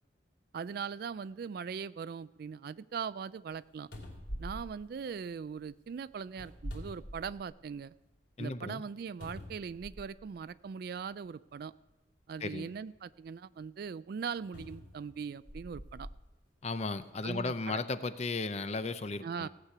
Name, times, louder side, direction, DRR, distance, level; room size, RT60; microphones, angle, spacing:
voice 1, 0.5-3.9 4.4-7.9 8.4-11.7 12.3-16.1 17.2-17.8 19.2-19.5, right 6 dB, 55° right, 18 dB, 0.3 m, -40 dB
sound 1, 3.5-3.6 3.9-5.6 6.3-7.7 8.1-8.2 9.2-10.3 11.3-11.4 14.5-16.2 16.9-17.0, equal, 75° left, 2.8 m, -45 dB
voice 2, 8.4-8.8 12.4-12.7 16.6-19.5, left 3 dB, 35° left, 12 dB, 0.6 m, -35 dB
17.0 x 8.2 x 5.8 m, 1.1 s
head